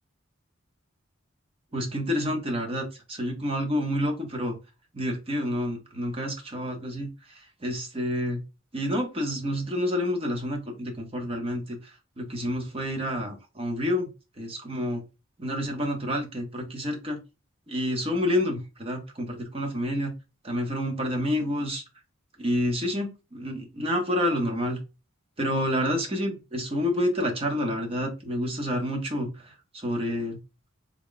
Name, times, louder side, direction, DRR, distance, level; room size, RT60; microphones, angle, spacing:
voice 1, 1.7-4.6 4.9-8.4 8.7-11.8 12.2-14.1 14.4-15.0 15.4-17.2 17.7-20.1 20.4-21.8 22.4-24.8 25.4-30.4, equal, 30° right, 2 dB, 0.8 m, -29 dB
3.6 x 2.2 x 3.8 m, 0.28 s
head